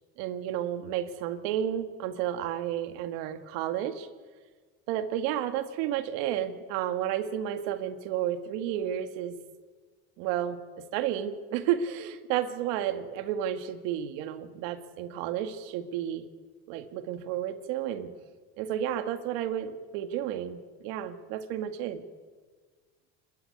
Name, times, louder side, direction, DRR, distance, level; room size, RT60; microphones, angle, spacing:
voice 1, 0.2-4.1 4.9-9.4 10.2-16.3 16.7-18.1 18.6-22.0, right 10 dB, 75° right, 8 dB, 2.1 m, -32 dB
27.5 x 13.0 x 9.6 m, 1.5 s
supercardioid pair, 95°, 35 cm